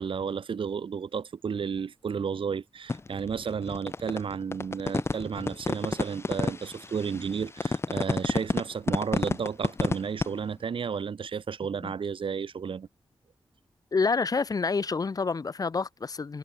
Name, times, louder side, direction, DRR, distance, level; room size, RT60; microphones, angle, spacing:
voice 1, 0.0-12.9, right 6 dB, 85° right, 6.5 m, -32 dB
sound 1, 2.9-10.3, left 3 dB, 30° left, 1.6 m, -29 dB
voice 2, 13.9-16.4, left 4 dB, 45° left, 2.4 m, -28 dB
wide cardioid pair, 145°, 9 cm